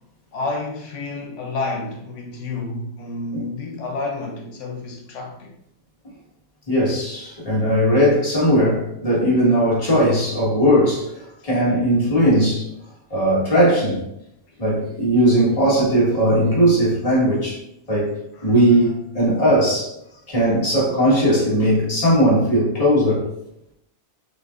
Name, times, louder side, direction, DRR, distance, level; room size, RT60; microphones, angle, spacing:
voice 1, 0.3-5.5 11.4-11.5 18.3-18.9 20.1-20.2, left 3 dB, 90° left, 1.0 m, -30 dB
voice 2, 6.7-12.7 13.1-14.0 14.6-17.6 17.9-18.1 18.4-19.9 20.3-23.2, equal, 30° left, 1.6 m, -18 dB
6.7 x 2.5 x 2.5 m
omnidirectional pair, 1.2 m